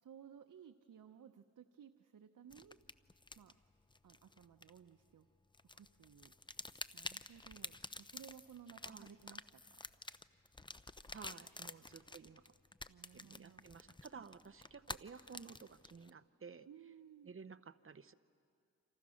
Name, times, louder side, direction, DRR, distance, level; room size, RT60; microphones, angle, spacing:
voice 1, 0.0-2.8 3.4-3.5 4.0-5.3 5.7-9.8 11.6-11.8 12.9-13.7 16.7-17.3, right 8 dB, 85° right, 8 dB, 0.8 m, -58 dB
sound 1, 2.5-5.2 5.5-16.1, left 2 dB, 15° left, 0.6 m, -50 dB
voice 2, 8.8-9.2 11.1-12.5 13.1-16.7 17.2-18.1, right 5 dB, 45° right, 12 dB, 0.8 m, -54 dB
28.5 x 27.0 x 6.4 m, 2.5 s
wide cardioid pair, 80°, 31 cm